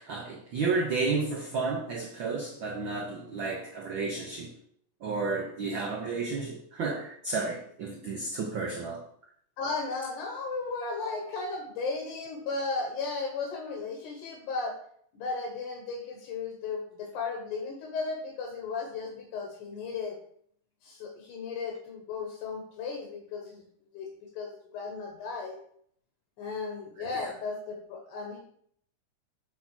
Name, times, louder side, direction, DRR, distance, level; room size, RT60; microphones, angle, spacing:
voice 1, 0.0-4.5 5.0-9.1 27.0-27.3, right 4 dB, 75° right, 1 dB, 1.1 m, -32 dB
voice 2, 9.6-14.8 15.1-20.2 20.8-23.6 23.9-24.1 24.4-25.6 26.4-28.4, left 4 dB, 85° left, 0 dB, 2.8 m, -35 dB
7.6 x 4.0 x 5.8 m, 0.64 s
omnidirectional pair, 3.5 m